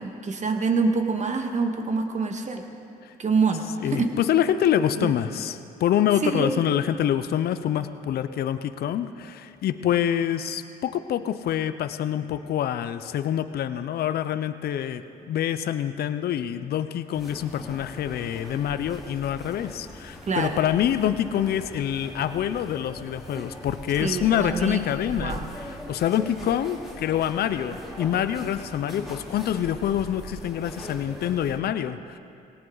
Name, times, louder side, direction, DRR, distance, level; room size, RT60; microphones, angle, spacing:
voice 1, 0.0-2.6 3.2-4.1 5.0-5.1 6.2-6.6 20.3-20.6 24.0-24.8 25.2-25.5, right 4 dB, 45° right, 4 dB, 1.8 m, -26 dB
voice 2, 3.8-32.2, left 10 dB, 65° left, 11 dB, 0.7 m, -26 dB
sound 1, 17.1-31.6, equal, ahead, 3.7 m, -41 dB
18.5 x 18.0 x 4.0 m, 2.5 s
supercardioid pair, 70°, 17 cm